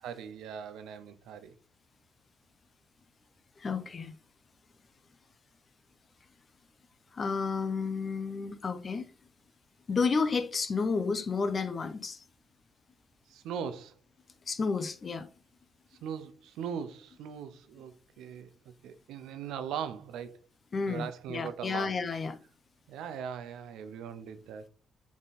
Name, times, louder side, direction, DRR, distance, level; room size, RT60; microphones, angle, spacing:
voice 1, 0.0-1.5 13.3-13.9 16.0-20.4 20.9-21.9 22.9-24.7, right 7 dB, 85° right, 0.6 m, -40 dB
voice 2, 3.6-4.1 7.1-9.1 9.9-12.2 14.5-15.3 20.7-22.4, left 4 dB, 40° left, 0.8 m, -31 dB
3.6 x 3.6 x 4.2 m
cardioid pair, 90°, 0 cm